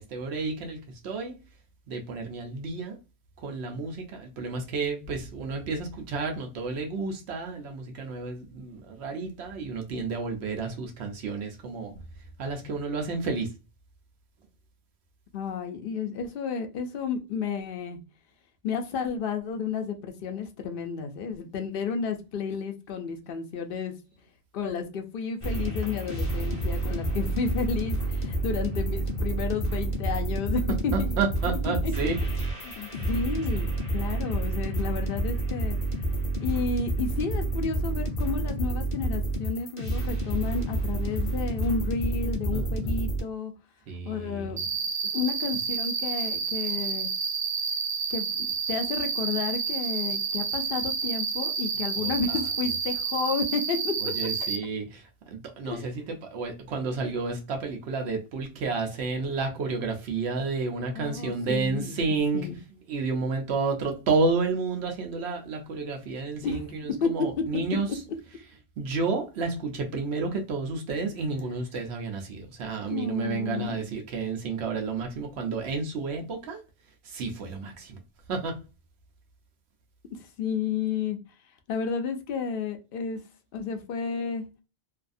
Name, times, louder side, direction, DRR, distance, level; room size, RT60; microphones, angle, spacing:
voice 1, 0.0-1.4 1.9-3.0 3.4-12.0 12.4-13.5 30.9-32.2 42.5-43.0 43.9-44.7 51.9-52.4 54.0-62.5 62.9-68.0 68.8-76.6 77.0-78.0 78.3-78.6, right 4 dB, 90° right, 0.9 m, -31 dB
voice 2, 15.3-18.0 18.6-23.9 24.5-31.2 31.8-31.9 32.6-35.8 36.4-43.5 44.0-44.6 45.1-47.1 48.1-54.1 55.6-55.8 60.9-62.0 62.3-62.5 66.4-66.6 67.0-67.1 72.9-73.7 80.4-81.2 81.7-83.2 83.5-84.4, left 5 dB, 65° left, 0.7 m, -31 dB
sound 1, 25.4-43.2, right 2 dB, 35° left, 0.9 m, -29 dB
Cricket, 44.6-54.6, right 5 dB, 55° right, 0.3 m, -30 dB
2.7 x 2.4 x 2.5 m
omnidirectional pair, 1.1 m